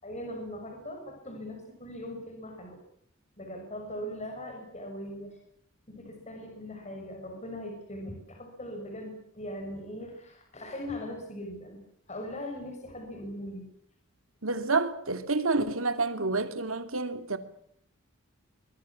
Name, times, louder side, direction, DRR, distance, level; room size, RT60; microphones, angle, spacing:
voice 1, 0.0-2.8 3.4-5.4 5.9-11.8 12.1-13.7, left 1 dB, 35° left, 6.2 m, -40 dB
voice 2, 14.4-17.4, right 3 dB, 70° right, 2.5 m, -28 dB
24.0 x 22.5 x 7.2 m
head